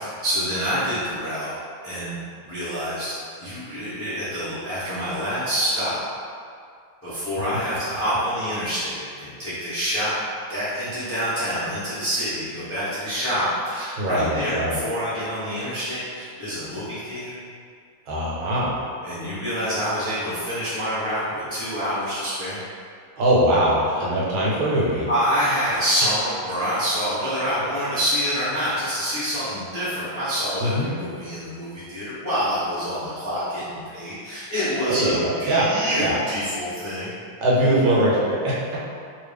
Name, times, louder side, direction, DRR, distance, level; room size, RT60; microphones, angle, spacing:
voice 1, 0.2-1.5 1.8-2.2 2.4-6.1 7.0-10.1 10.5-17.4 19.0-22.6 25.1-37.1, equal, 20° left, -13 dB, 0.3 m, -26 dB
voice 2, 14.0-14.8 18.1-18.8 23.2-25.1 30.6-30.9 34.9-36.2 37.4-38.5, right 1 dB, 75° right, -6 dB, 1.6 m, -21 dB
3.2 x 2.6 x 3.4 m, 2.2 s
omnidirectional pair, 2.2 m